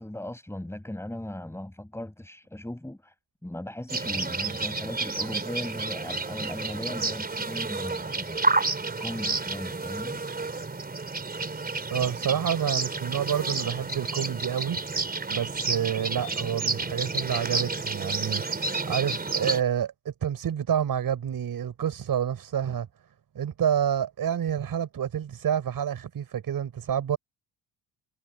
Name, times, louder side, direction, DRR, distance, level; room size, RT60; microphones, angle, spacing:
voice 1, 0.0-3.1 3.4-8.4 9.0-10.2, left 1 dB, 5° left, 6.3 m, -37 dB
sound 1, 3.9-19.6, right 3 dB, 20° right, 4.1 m, -30 dB
voice 2, 11.9-14.8 15.3-22.9 23.3-27.2, right 9 dB, 55° right, 5.9 m, -28 dB
cardioid pair, 125°, 42 cm